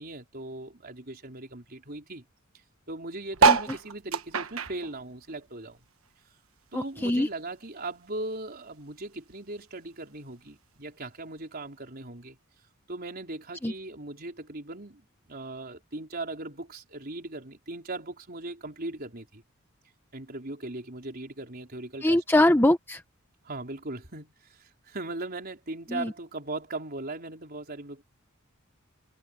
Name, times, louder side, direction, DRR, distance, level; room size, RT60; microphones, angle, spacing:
voice 1, 0.0-2.2 2.9-5.8 6.7-12.4 12.9-15.0 15.3-19.4 20.1-22.6 23.4-28.0, right 2 dB, 45° right, 4.3 m, -39 dB
sound 1, 3.3-6.1 6.4-8.0 8.5-8.6 8.7-8.8 9.0-9.4 10.2-10.3, right 4 dB, 80° right, 1.2 m, -26 dB
voice 2, 6.7-7.3 13.6-13.7 22.0-23.0 25.9-26.1, left 1 dB, 10° left, 0.8 m, -23 dB
head